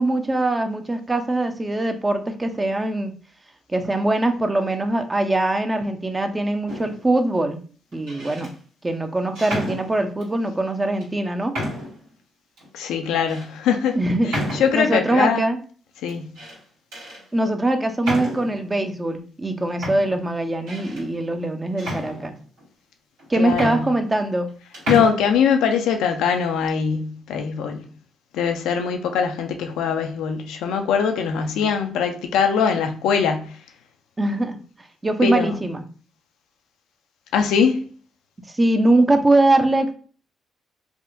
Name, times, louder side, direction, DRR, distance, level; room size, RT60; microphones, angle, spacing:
voice 1, 0.0-3.1 3.7-7.6 7.9-8.5 8.8-11.6 14.0-14.3 14.7-15.6 17.3-22.3 23.3-24.5 34.2-34.6 35.0-35.8 38.5-39.9, right 2 dB, 25° right, 0.6 m, -22 dB
sound 1, 6.7-7.1 7.9-8.5 9.3-10.3 11.0-11.1 11.5-12.1 12.6-12.7 13.3-13.5 14.3-15.0 16.1-16.6 16.9-17.2 18.0-18.6 19.4-19.5 19.8-21.1 21.8-22.6 23.2-23.3 23.5-24.5 24.7-25.1, equal, 80° right, 1.5 m, -31 dB
voice 2, 12.7-14.0 14.5-15.4 16.0-16.3 23.3-23.8 24.9-27.8 28.3-33.5 35.2-35.6 37.3-37.9, left 6 dB, 75° left, 0.4 m, -22 dB
3.5 x 2.2 x 2.6 m
hypercardioid pair, 45°, 0 cm